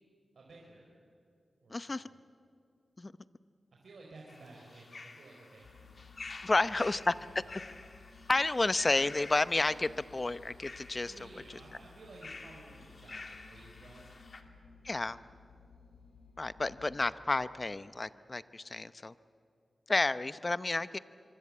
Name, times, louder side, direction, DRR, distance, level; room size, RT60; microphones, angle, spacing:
voice 1, 0.3-0.9 1.6-2.2 3.7-5.9 6.7-6.8 7.1-7.7 11.0-14.1, right 2 dB, 80° right, -2 dB, 4.4 m, -54 dB
voice 2, 1.7-2.1 3.0-3.1 6.4-7.4 8.3-11.1 14.8-15.2 16.4-19.1 19.9-21.0, left 2 dB, 35° left, 14 dB, 0.8 m, -31 dB
sound 1, 4.3-14.4, left 3 dB, 50° left, 2.3 m, -50 dB
sound 2, 5.6-17.1, left 4 dB, 85° left, 4.4 m, -57 dB
25.0 x 24.0 x 8.7 m, 2.5 s
wide cardioid pair, 80°, 0 cm